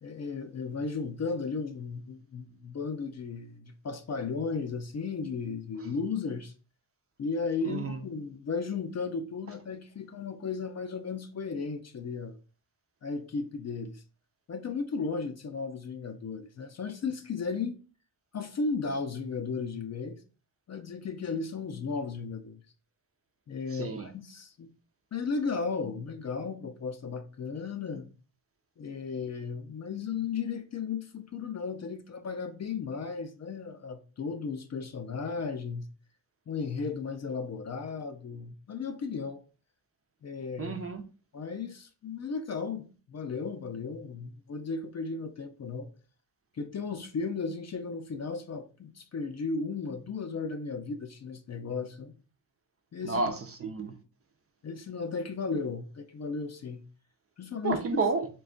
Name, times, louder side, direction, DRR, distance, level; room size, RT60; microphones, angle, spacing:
voice 1, 0.0-6.5 7.2-12.3 13.0-14.0 14.5-17.8 18.3-20.2 20.7-22.6 23.5-24.7 25.1-28.1 28.8-35.9 36.5-39.4 40.2-40.8 41.3-45.9 46.5-52.1 52.9-53.4 54.6-56.8 57.4-57.8, left 4 dB, 40° left, 0.4 m, -35 dB
voice 2, 7.6-8.0 23.7-24.1 40.6-41.0 53.0-54.0 57.6-58.3, right 3 dB, 35° right, 0.4 m, -31 dB
4.1 x 2.3 x 3.6 m
wide cardioid pair, 130°, 43 cm